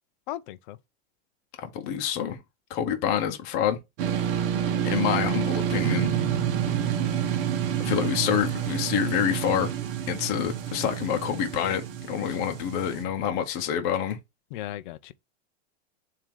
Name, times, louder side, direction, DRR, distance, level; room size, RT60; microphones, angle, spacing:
voice 1, 0.3-0.8 12.3-12.4 14.5-15.1, left 14 dB, 45° left, 0.5 m, -37 dB
voice 2, 1.6-2.4 2.7-3.8 4.8-6.1 7.8-9.7 10.1-14.2, left 9 dB, 30° left, 0.9 m, -27 dB
sound 1, 4.0-13.0, right 9 dB, 55° right, 1.3 m, -29 dB
sound 2, 5.8-13.4, right 8 dB, 20° right, 1.1 m, -36 dB
7.3 x 2.8 x 4.8 m
supercardioid pair, 175°, 33 cm